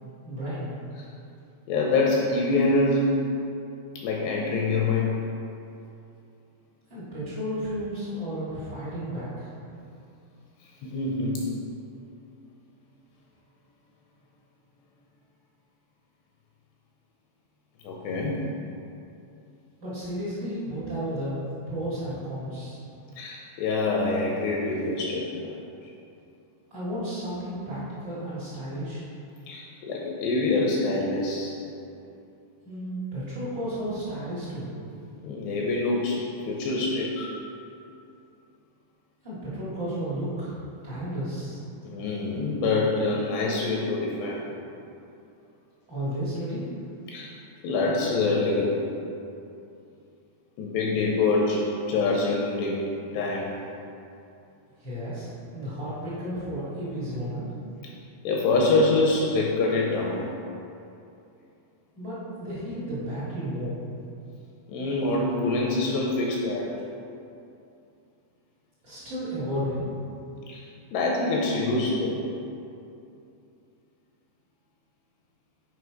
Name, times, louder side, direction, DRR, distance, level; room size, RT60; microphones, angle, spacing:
voice 1, 0.2-0.8 6.9-9.5 19.8-21.4 21.7-22.8 26.7-29.1 32.6-34.7 39.2-40.6 40.8-41.6 45.9-46.7 54.8-57.5 61.9-63.8 68.8-69.9, equal, 70° right, -10 dB, 1.0 m, -33 dB
voice 2, 1.7-3.1 4.0-5.1 10.8-11.4 17.8-18.4 23.2-25.6 29.5-31.5 35.2-37.3 41.8-44.6 47.1-47.3 47.6-48.8 50.6-52.9 53.1-53.5 58.2-60.2 64.7-66.7 70.5-70.6 70.9-72.3, left 3 dB, 80° left, -2 dB, 2.6 m, -25 dB
8.1 x 4.9 x 4.8 m, 2.6 s
omnidirectional pair, 5.4 m